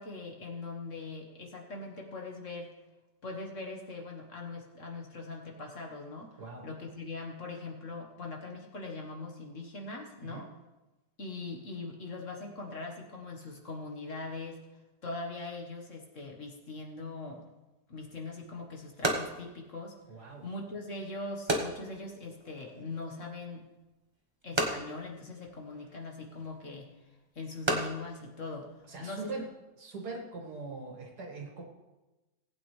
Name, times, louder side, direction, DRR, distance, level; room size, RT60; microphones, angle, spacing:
voice 1, 0.0-2.7 3.2-10.5 11.2-14.6 15.0-17.4 17.9-20.0 20.4-23.7 24.4-26.9 27.4-28.7 29.0-29.5, left 3 dB, 45° left, 0 dB, 1.8 m, -41 dB
sound 1, 18.0-29.3, right 1 dB, 20° right, 1.1 m, -37 dB
voice 2, 20.1-20.4 28.9-29.5 29.8-31.6, right 3 dB, 65° right, 0 dB, 2.5 m, -41 dB
19.0 x 8.9 x 3.3 m, 1.1 s
omnidirectional pair, 1.8 m